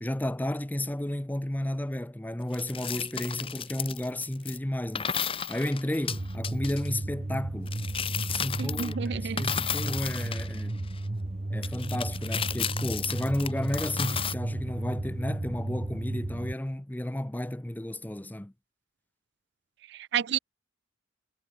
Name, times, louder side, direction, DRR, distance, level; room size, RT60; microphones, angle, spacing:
voice 1, 0.0-5.1 5.5-7.8 8.3-10.9 11.5-18.5, left 1 dB, 10° left, 0.6 m, -32 dB
sound 1, 2.5-4.6 4.9-6.9 7.7-9.1 9.4-11.0 11.6-14.3, left 7 dB, 30° left, 1.2 m, -33 dB
sound 2, 6.1-16.5, right 2 dB, 35° right, 0.8 m, -34 dB
voice 2, 8.6-9.4 19.9-20.4, right 8 dB, 60° right, 0.5 m, -31 dB
head